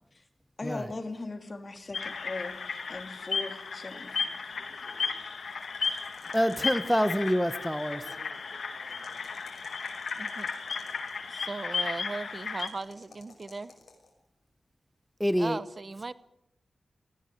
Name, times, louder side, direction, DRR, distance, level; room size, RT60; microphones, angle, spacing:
voice 1, 0.6-2.5 2.9-4.4, left 3 dB, 35° left, 2.9 m, -39 dB
sound 1, 1.9-12.7, left 5 dB, 75° left, 2.2 m, -35 dB
voice 2, 4.5-5.3 7.5-9.3, right 3 dB, 65° right, 4.9 m, -54 dB
sound 2, 5.5-7.4 8.8-11.2 12.5-14.1, left 4 dB, 60° left, 6.2 m, -55 dB
voice 3, 6.3-8.0 15.2-15.6, equal, ahead, 0.9 m, -27 dB
voice 4, 10.1-10.5 11.3-13.7 15.4-16.1, right 3 dB, 35° right, 0.8 m, -37 dB
20.5 x 16.0 x 9.4 m
wide cardioid pair, 115°, 0 cm